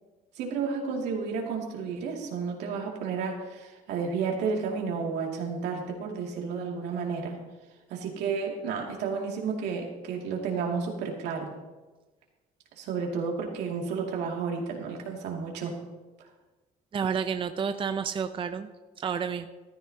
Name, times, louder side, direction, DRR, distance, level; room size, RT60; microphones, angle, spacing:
voice 1, 0.4-7.4 7.9-11.5 12.8-15.8, right 5 dB, 85° right, 0 dB, 2.4 m, -32 dB
voice 2, 16.9-18.7 19.0-19.5, right 6 dB, 30° right, 9 dB, 0.6 m, -30 dB
14.5 x 13.5 x 2.9 m, 1.2 s
cardioid pair, 110°, 17 cm